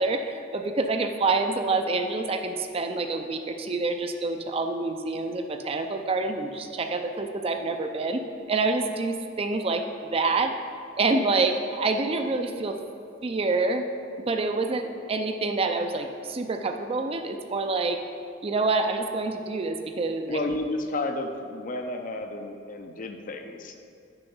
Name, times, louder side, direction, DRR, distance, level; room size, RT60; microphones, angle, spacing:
voice 1, 0.0-8.2 8.5-9.8 10.1-10.5 11.0-12.8 13.2-13.9 14.3-18.0 18.4-20.4, right 3 dB, 30° right, 6 dB, 0.4 m, -27 dB
voice 2, 20.3-23.7, left 2 dB, 45° left, 5 dB, 0.6 m, -32 dB
6.9 x 5.7 x 5.4 m, 2.5 s
head